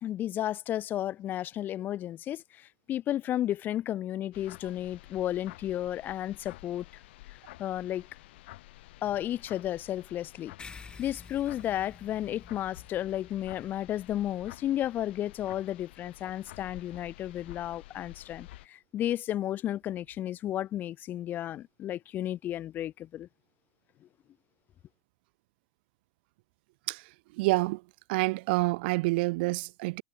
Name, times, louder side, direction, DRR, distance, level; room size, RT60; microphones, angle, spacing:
voice 1, 0.0-7.0 7.6-8.1 9.0-10.5 11.0-23.3, left 12 dB, 35° left, 0.8 m, -33 dB
sound 1, 4.3-18.7, left 18 dB, 75° left, 5.2 m, -51 dB
sound 2, 10.6-15.4, left 5 dB, 15° left, 2.7 m, -51 dB
voice 2, 27.4-27.8 28.1-30.0, right 24 dB, 65° right, 0.4 m, -27 dB
supercardioid pair, 145°, 6 cm